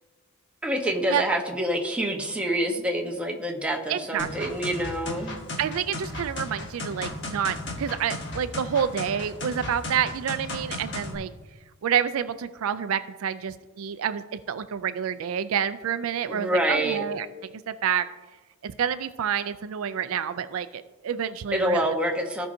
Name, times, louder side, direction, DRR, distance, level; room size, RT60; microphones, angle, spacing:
voice 1, 0.6-5.4 16.3-17.0 21.5-22.5, right 1 dB, 5° right, 0 dB, 1.0 m, -26 dB
voice 2, 3.9-4.6 5.6-11.3 11.8-17.3 17.7-18.1 18.6-22.0, right 8 dB, 65° right, 12 dB, 0.4 m, -28 dB
sound 1, 4.2-11.1, left 2 dB, 55° left, 1.5 m, -35 dB
16.5 x 5.5 x 2.7 m, 1.2 s
head